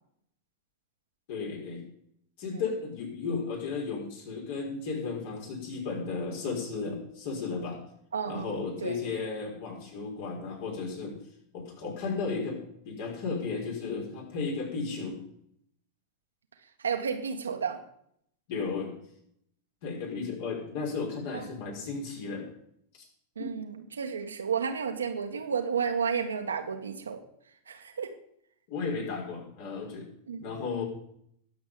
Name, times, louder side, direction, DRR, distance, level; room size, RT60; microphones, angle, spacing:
voice 1, 1.3-1.8 2.4-7.8 8.3-11.2 11.5-15.2 18.5-19.0 19.8-22.5 23.0-23.1 23.4-23.5 28.7-30.1 30.4-30.8, left 4 dB, 50° left, 0 dB, 5.4 m, -34 dB
voice 2, 8.1-9.0 16.8-17.8 21.3-21.4 23.3-27.2 27.7-28.1 30.3-30.4, right 6 dB, 70° right, 5 dB, 1.7 m, -32 dB
21.0 x 8.1 x 5.1 m, 0.69 s
figure-of-eight pair, 90°, 0 cm